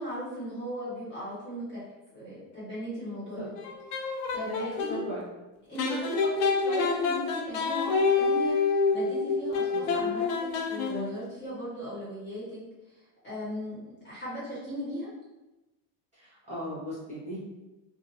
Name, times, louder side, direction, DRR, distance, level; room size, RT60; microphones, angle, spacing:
voice 1, 0.0-1.8 2.1-3.5 3.9-5.0 5.6-12.6 13.0-15.1, equal, 25° left, -9 dB, 1.1 m, -38 dB
sound 1, 3.6-5.0 5.8-11.2, left 4 dB, 60° left, 0.5 m, -27 dB
voice 2, 4.5-4.8 5.1-5.2 9.7-9.8 16.2-17.4, equal, 15° right, -11 dB, 1.0 m, -37 dB
2.6 x 2.1 x 2.5 m, 1.0 s
supercardioid pair, 130°, 45 cm